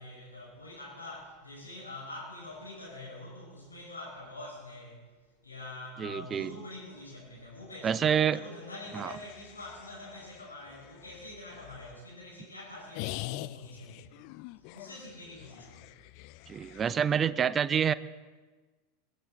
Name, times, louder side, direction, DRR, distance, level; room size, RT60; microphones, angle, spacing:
voice 1, 0.0-5.1 5.4-14.3 14.6-16.0 16.8-17.0, left 2 dB, 85° left, -3 dB, 5.3 m, -45 dB
voice 2, 6.0-6.5 7.8-8.4 8.9-9.1 16.5-17.9, right 8 dB, 25° right, 17 dB, 0.5 m, -27 dB
sound 1, 8.8-12.0 12.9-17.0, left 18 dB, 50° left, 0.4 m, -44 dB
22.0 x 13.0 x 3.9 m, 1.3 s
figure-of-eight pair, 85°, 0 cm